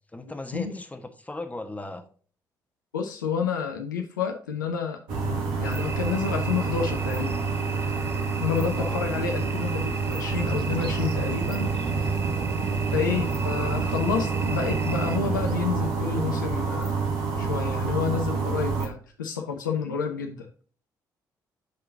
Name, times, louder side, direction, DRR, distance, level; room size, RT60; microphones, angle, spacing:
voice 1, 0.1-2.0 8.8-9.0 13.1-13.4, left 2 dB, 15° left, 5 dB, 1.3 m, -37 dB
voice 2, 2.9-5.0 5.6-7.4 8.4-12.3 12.9-17.0 17.4-20.5, left 6 dB, 85° left, 3 dB, 0.7 m, -29 dB
sound 1, 5.1-18.9, right 4 dB, 70° right, 1.3 m, -28 dB
sound 2, 5.6-15.2, right 4 dB, 25° right, 0.5 m, -38 dB
sound 3, 10.3-15.6, right 4 dB, 50° right, 0.9 m, -34 dB
10.5 x 3.8 x 2.6 m, 0.43 s
figure-of-eight pair, 45°, 10 cm